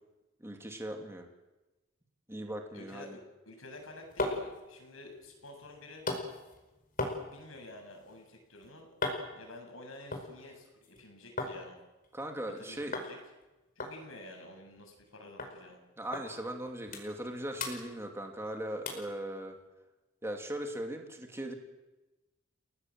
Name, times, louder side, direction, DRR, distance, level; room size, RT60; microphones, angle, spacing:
voice 1, 0.4-1.3 2.3-3.2 12.1-13.0 16.0-19.6 20.2-21.5, right 1 dB, 15° right, 3 dB, 2.8 m, -39 dB
voice 2, 2.7-6.1 7.2-8.9 9.3-11.8 12.6-13.2 13.8-15.8, left 2 dB, 90° left, 2 dB, 7.7 m, -50 dB
sound 1, 3.7-11.6 11.9-12.6 12.9-13.1 13.4-13.5 13.8-15.1 15.4-15.5 16.1-16.3 16.6-17.3 17.6-18.5 18.9-19.1 19.6-19.7, left 2 dB, 45° left, 5.0 m, -39 dB
29.5 x 18.5 x 7.8 m, 1.1 s
head